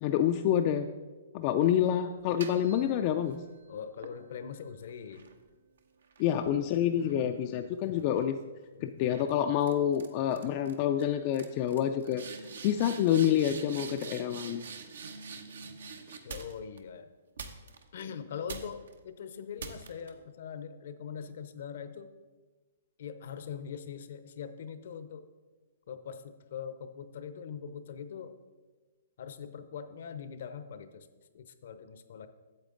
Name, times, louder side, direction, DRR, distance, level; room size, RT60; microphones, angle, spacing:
voice 1, 0.0-0.9 1.3-3.4 6.2-8.4 8.8-14.6, left 10 dB, 35° left, 6 dB, 0.3 m, -28 dB
sound 1, 2.2-3.4 4.0-7.6 8.0-8.4 9.1-9.3 9.6-10.1 10.3-10.7 11.0-11.1 11.3-16.8 17.4-18.0 18.5-18.9 19.6-20.1, right 5 dB, 80° right, 0.9 m, -45 dB
voice 2, 3.7-5.3 6.8-7.7 8.7-9.2 12.6-13.0 16.2-17.1 17.9-22.1 23.0-25.3 25.9-28.4 29.2-31.1 31.3-32.3, left 7 dB, 60° left, 11 dB, 0.7 m, -42 dB
8.8 x 7.4 x 3.8 m, 1.3 s
hypercardioid pair, 155°, 0 cm